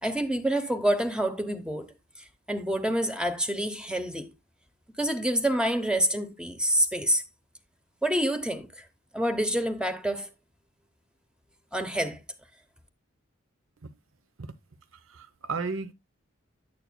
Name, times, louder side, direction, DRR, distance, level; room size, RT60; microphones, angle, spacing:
voice 1, 0.0-1.9 2.5-4.3 5.0-7.2 8.0-8.8 9.1-10.3 11.7-12.2, right 1 dB, 5° right, 0.7 m, -27 dB
voice 2, 15.1-15.9, right 4 dB, 75° right, 0.8 m, -34 dB
9.2 x 8.7 x 2.2 m
head